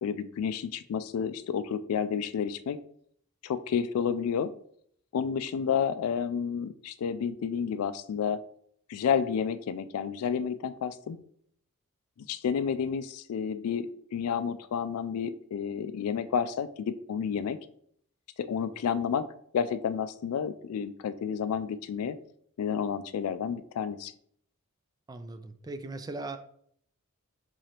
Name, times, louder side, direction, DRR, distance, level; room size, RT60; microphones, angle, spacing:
voice 1, 0.0-2.8 3.4-4.5 5.1-8.4 8.9-11.2 12.3-17.6 18.4-19.3 19.5-22.2 22.6-24.1, left 7 dB, 75° left, 13 dB, 0.3 m, -30 dB
voice 2, 25.1-26.4, right 2 dB, 15° right, 9 dB, 0.3 m, -39 dB
4.8 x 3.8 x 2.9 m, 0.66 s
head